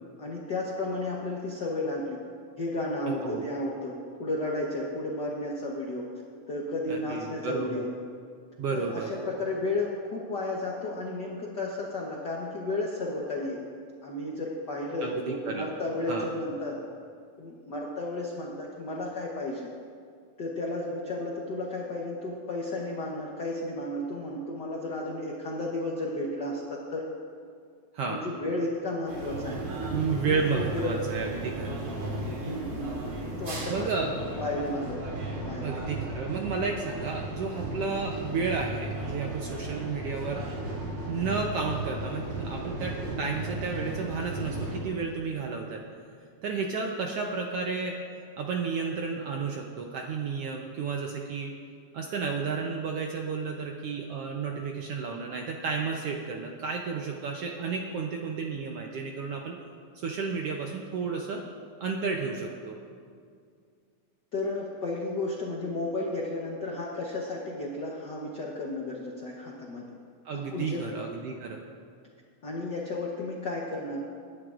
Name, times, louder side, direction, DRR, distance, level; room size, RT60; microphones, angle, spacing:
voice 1, 0.2-2.2 2.6-6.1 6.5-7.9 8.7-13.6 14.0-16.8 17.4-19.7 20.4-27.1 28.0-31.0 32.4-35.8 64.3-69.9 70.3-70.8 72.4-74.0, left 2 dB, 90° left, -3 dB, 0.9 m, -33 dB
voice 2, 6.9-7.8 8.6-9.1 15.0-15.7 16.1-16.3 27.9-28.2 29.9-31.8 33.7-34.1 35.6-40.4 41.1-45.8 46.4-48.0 48.4-51.5 51.9-59.6 59.9-61.4 61.8-62.8 70.2-71.6, right 5 dB, 75° right, 1 dB, 1.4 m, -32 dB
sound 1, 29.1-44.8, right 2 dB, 50° right, 2.5 m, -35 dB
21.5 x 11.0 x 2.5 m, 2.2 s
omnidirectional pair, 3.5 m